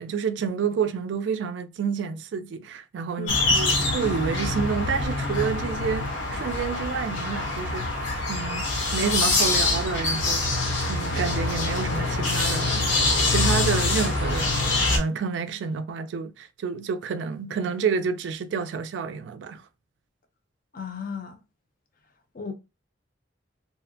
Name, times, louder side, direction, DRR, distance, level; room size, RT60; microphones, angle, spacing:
voice 1, 0.0-7.9 8.3-12.9 13.2-19.6, right 6 dB, 65° right, 0.3 m, -29 dB
sound 1, 3.3-15.0, left 2 dB, 75° left, 0.8 m, -25 dB
voice 2, 20.7-21.4 22.3-22.5, left 5 dB, 45° left, 0.5 m, -34 dB
2.7 x 2.1 x 2.5 m
head